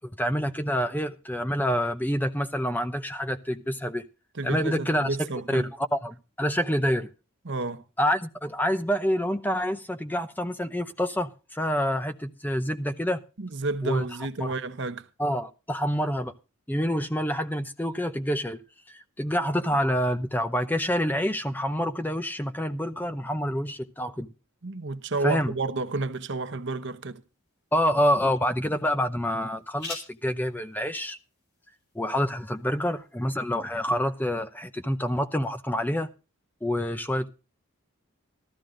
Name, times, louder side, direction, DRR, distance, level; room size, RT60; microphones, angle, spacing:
voice 1, 0.2-4.0 4.4-5.1 5.5-5.6 5.9-7.1 8.0-13.2 13.8-14.0 14.4-14.5 15.2-16.3 16.7-18.6 18.9-24.3 25.2-25.5 27.7-31.2 31.9-36.1 36.6-37.3, equal, 10° left, 0.7 m, -27 dB
voice 2, 4.3-5.7 7.4-7.8 13.4-15.1 24.6-27.2, right 3 dB, 55° right, 1.0 m, -31 dB
sound 1, 25.8-33.3, left 2 dB, 50° left, 4.6 m, -48 dB
14.0 x 13.5 x 3.8 m
head